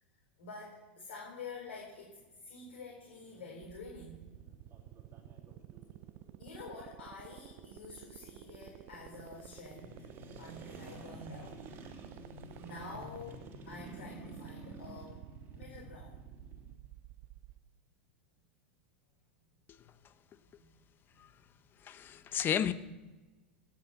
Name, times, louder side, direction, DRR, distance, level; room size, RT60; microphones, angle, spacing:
voice 1, 0.4-4.3 6.4-10.1 10.4-11.5 12.6-15.2 15.5-16.1, left 3 dB, 70° left, 4.1 m, -48 dB
sound 1, 1.6-16.7, right 1 dB, 35° right, 3.3 m, -53 dB
sound 2, 3.6-17.6, right 16 dB, 50° right, 0.6 m, -51 dB
voice 2, 21.8-22.7, left 9 dB, 35° left, 1.0 m, -33 dB
17.5 x 7.6 x 7.5 m
hypercardioid pair, 95°, 6 cm